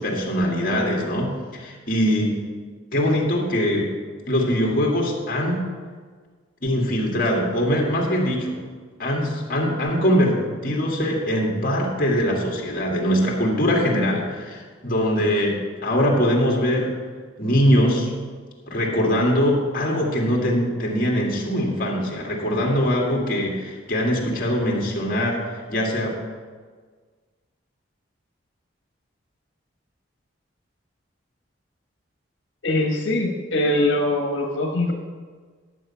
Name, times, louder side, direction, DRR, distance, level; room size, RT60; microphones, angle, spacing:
voice 1, 0.0-2.4 2.9-3.9 4.3-5.7 6.6-8.6 9.0-17.0 17.4-18.1 18.7-26.1, equal, 45° left, -1 dB, 2.1 m, -22 dB
voice 2, 32.6-34.9, left 1 dB, 75° left, 0 dB, 1.2 m, -22 dB
11.0 x 7.4 x 5.6 m, 1.5 s
head